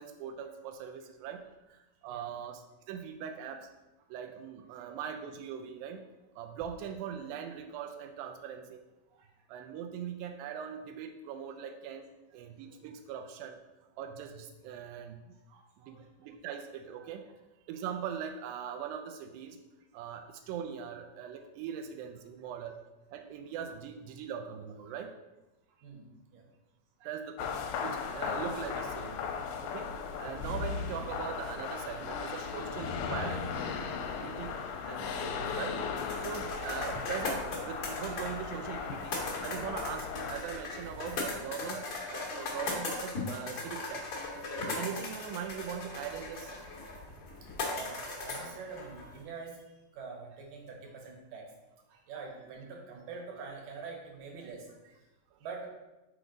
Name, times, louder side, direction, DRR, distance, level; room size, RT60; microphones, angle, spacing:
voice 1, 0.0-1.4 1.7-3.7 4.1-6.0 6.4-8.8 9.5-12.1 12.3-13.6 14.0-15.3 15.8-17.3 17.7-19.6 19.9-22.8 23.1-25.2 27.0-29.2 29.6-29.9 30.2-33.9 34.2-34.6 34.9-35.8 36.1-44.0 44.7-46.5 55.3-55.4, right 8 dB, 90° right, 5 dB, 2.3 m, -41 dB
voice 2, 15.5-16.1 24.8-24.9 25.8-26.4 27.0-27.1 31.6-31.7 34.8-34.9 36.2-36.3 46.7-46.8 47.7-51.4 51.9-55.0 55.4-55.7, right 4 dB, 75° right, 0 dB, 2.7 m, -46 dB
sound 1, 27.4-40.4, left 6 dB, 85° left, 2.2 m, -37 dB
sound 2, 36.0-49.2, left 3 dB, 50° left, 1.4 m, -38 dB
6.3 x 5.0 x 3.8 m, 1.0 s
omnidirectional pair, 4.0 m